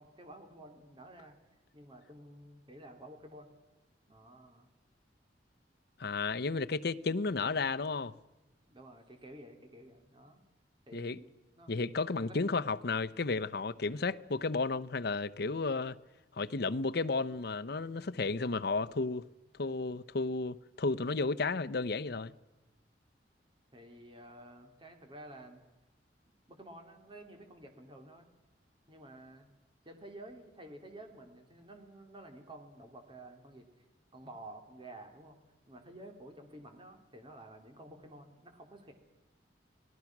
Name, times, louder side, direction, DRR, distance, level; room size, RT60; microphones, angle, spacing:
voice 1, 0.0-1.3 1.7-3.5 4.1-4.7 8.7-10.4 10.9-11.8 12.2-12.4 23.7-25.6 26.5-28.3 28.9-29.5 29.8-33.7 34.1-35.4 35.7-38.9, right 1 dB, 30° right, 3.1 m, -51 dB
voice 2, 6.0-8.1 10.9-11.2 11.7-16.0 16.4-19.2 19.6-22.3, left 3 dB, 65° left, 0.8 m, -33 dB
29.5 x 19.0 x 6.0 m
head